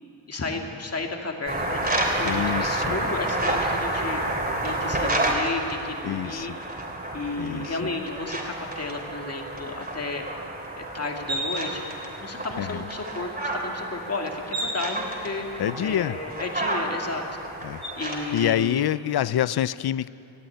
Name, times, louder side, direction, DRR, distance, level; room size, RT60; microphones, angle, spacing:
voice 1, 0.3-6.5 7.1-10.3 10.7-11.8 12.2-17.2 17.9-18.9, left 3 dB, 35° left, 2 dB, 2.4 m, -33 dB
sound 1, 1.5-18.5, right 1 dB, 20° right, 3.4 m, -30 dB
voice 2, 2.2-2.9 6.0-6.5 7.4-7.8 12.6-12.9 15.6-16.2 17.6-17.8 18.3-20.1, left 11 dB, 60° left, 18 dB, 0.6 m, -26 dB
20.0 x 14.0 x 9.2 m, 2.7 s
wide cardioid pair, 110°, 43 cm